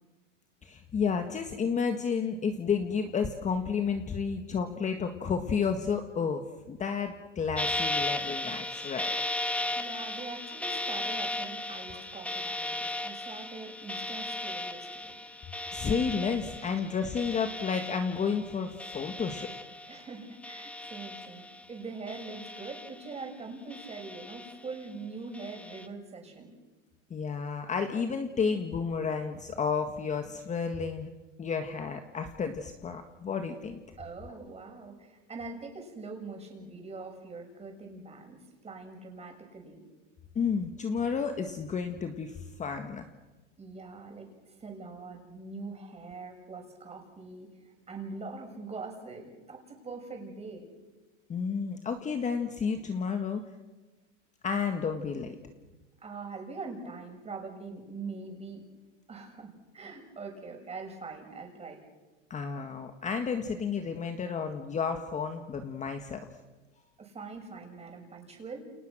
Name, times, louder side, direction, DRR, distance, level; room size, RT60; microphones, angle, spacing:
voice 1, 0.6-9.1 15.7-19.5 27.1-31.1 31.4-33.8 40.3-43.1 51.3-53.4 54.4-55.3 62.3-66.2, left 6 dB, 20° left, 6 dB, 1.7 m, -31 dB
sound 1, 7.6-20.1 20.4-21.7 22.1-23.3 23.7-24.8 25.3-25.9, left 2 dB, 5° left, 1.4 m, -36 dB
voice 2, 9.7-15.2 16.7-16.8 19.9-26.6 34.0-39.8 43.6-47.5 47.9-50.7 55.2-55.3 56.0-58.6 59.1-61.8 67.0-68.6, right 4 dB, 15° right, 3 dB, 6.6 m, -43 dB
29.5 x 29.0 x 6.3 m, 1.2 s
supercardioid pair, 130°, 37 cm